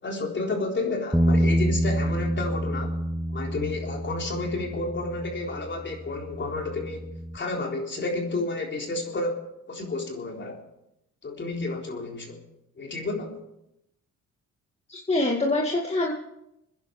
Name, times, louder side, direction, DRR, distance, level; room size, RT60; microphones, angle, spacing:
voice 1, 0.0-3.0 3.3-7.1 7.3-9.4 9.7-10.6 11.2-12.4 12.8-13.3, left 2 dB, 40° left, 0 dB, 4.0 m, -31 dB
Bass guitar, 1.1-7.4, right 1 dB, ahead, 1.0 m, -28 dB
voice 2, 14.9-16.1, left 2 dB, 20° left, -1 dB, 2.0 m, -25 dB
25.5 x 10.5 x 4.8 m, 0.83 s
cardioid pair, 90°, 30 cm